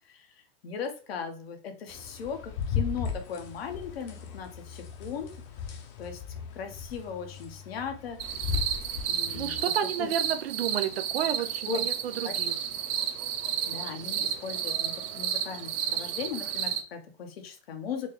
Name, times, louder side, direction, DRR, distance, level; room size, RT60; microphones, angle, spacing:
voice 1, 0.6-5.3 6.0-6.2 6.5-8.4 9.1-9.6 10.0-10.1 11.7-11.9 12.2-12.3 13.7-18.1, left 6 dB, 75° left, 5 dB, 1.1 m, -38 dB
sound 1, 1.9-9.6, left 7 dB, 40° left, 0.8 m, -36 dB
sound 2, 8.2-16.8, right 9 dB, 35° right, 0.6 m, -32 dB
voice 2, 9.3-12.6, right 9 dB, 80° right, 10 dB, 0.6 m, -31 dB
4.5 x 2.4 x 3.1 m, 0.36 s
hypercardioid pair, 125°, 30 cm